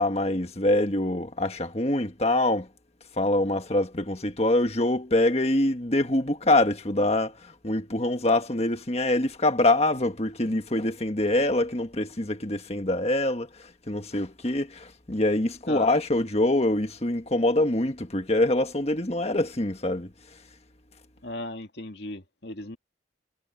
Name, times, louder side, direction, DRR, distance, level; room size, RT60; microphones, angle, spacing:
voice 1, 0.0-2.7 3.2-20.1, left 1 dB, 35° left, 1.6 m, -25 dB
voice 2, 21.2-22.8, left 1 dB, 60° left, 2.5 m, -36 dB
head